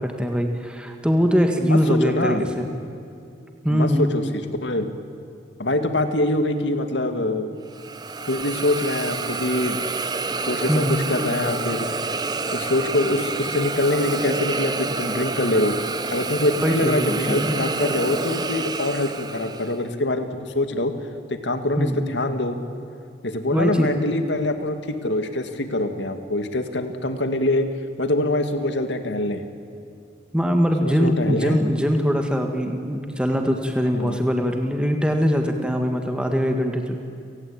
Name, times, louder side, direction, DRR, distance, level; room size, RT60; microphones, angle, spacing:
voice 1, 0.0-2.7 3.6-4.1 10.7-11.0 16.6-17.6 21.8-22.0 23.5-24.0 30.3-37.0, equal, 5° right, 4 dB, 1.7 m, -22 dB
voice 2, 1.6-2.4 3.7-4.9 5.6-7.6 8.2-9.8 10.4-11.9 12.5-15.7 16.1-20.9 21.3-22.6 23.2-27.7 28.0-29.4 30.8-31.6 33.9-34.2, left 1 dB, 80° left, 8 dB, 2.1 m, -24 dB
Hiss, 7.7-19.8, right 3 dB, 20° right, 0.9 m, -28 dB
30.0 x 18.5 x 8.7 m, 2.6 s
head